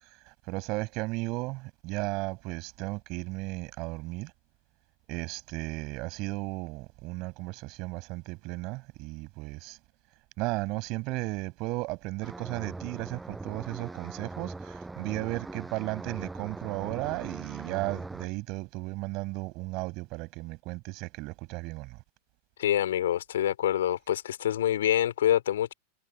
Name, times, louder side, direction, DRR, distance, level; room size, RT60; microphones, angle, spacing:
voice 1, 0.5-4.3 5.1-9.8 10.4-22.0, right 24 dB, 40° right, 6.2 m, -35 dB
sound 1, 12.2-18.3, right 3 dB, 10° right, 6.7 m, -41 dB
voice 2, 22.6-25.7, left 11 dB, 60° left, 2.5 m, -26 dB
figure-of-eight pair, 90°, 0 cm